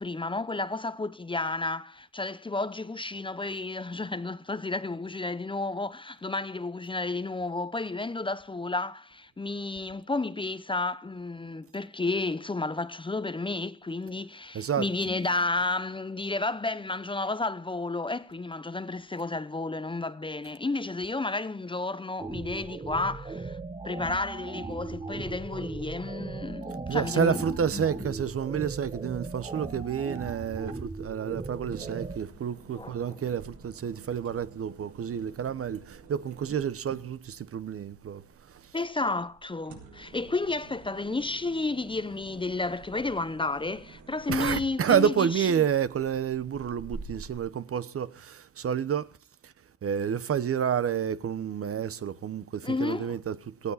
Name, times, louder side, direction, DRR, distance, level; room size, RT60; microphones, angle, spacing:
voice 1, 0.0-23.6 23.8-27.4 27.7-27.8 32.8-32.9 38.7-45.5 52.6-53.1, left 3 dB, 15° left, 0.8 m, -32 dB
voice 2, 14.5-14.9 26.9-38.8 44.3-49.1 49.4-49.5 49.8-53.7, right 8 dB, 50° right, 1.1 m, -29 dB
sound 1, 22.2-32.2, right 3 dB, 20° right, 1.5 m, -38 dB
sound 2, 30.5-47.4, right 4 dB, 70° right, 6.3 m, -48 dB
18.0 x 15.5 x 4.2 m
cardioid pair, 90°, 30 cm